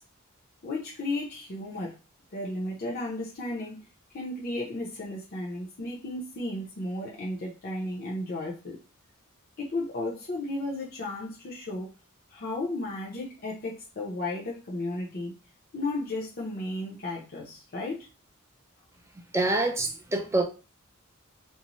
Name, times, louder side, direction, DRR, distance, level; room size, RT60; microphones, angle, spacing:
voice 1, 0.6-1.9 2.3-3.8 4.1-8.8 9.6-11.9 12.3-15.3 15.7-18.0, left 2 dB, 45° left, -4 dB, 0.6 m, -34 dB
voice 2, 19.3-20.4, right 2 dB, 15° right, 4 dB, 0.4 m, -26 dB
2.6 x 2.1 x 2.9 m, 0.32 s
head